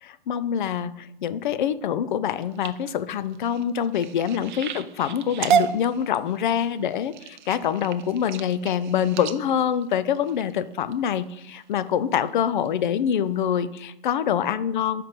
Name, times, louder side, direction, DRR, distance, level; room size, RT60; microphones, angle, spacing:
voice 1, 0.0-15.0, left 9 dB, 55° left, 15 dB, 0.5 m, -25 dB
sound 1, 2.2-10.9 11.5-11.9 12.3-12.7 13.1-13.2 13.5-13.6, right 8 dB, 50° right, 0.5 m, -31 dB
5.6 x 3.7 x 5.7 m, 0.83 s
hypercardioid pair, 145°, 30 cm